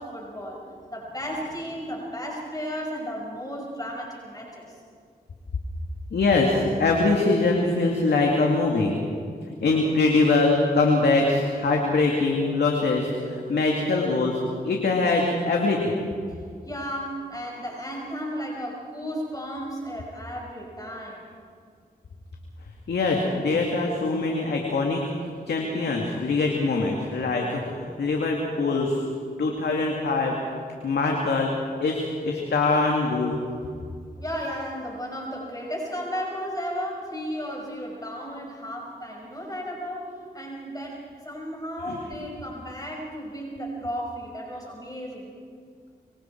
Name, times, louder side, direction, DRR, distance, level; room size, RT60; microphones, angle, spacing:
voice 1, 0.0-4.8 16.3-16.4 16.6-21.3 34.2-45.4, equal, 20° left, -1 dB, 5.6 m, -34 dB
voice 2, 6.1-8.9 9.5-14.4 14.6-16.0 22.9-29.0 29.4-30.4 30.8-31.5 31.8-33.4 41.9-42.0, left 3 dB, 85° left, 0 dB, 2.4 m, -23 dB
26.0 x 24.5 x 4.6 m, 2.1 s
cardioid pair, 40°, 17 cm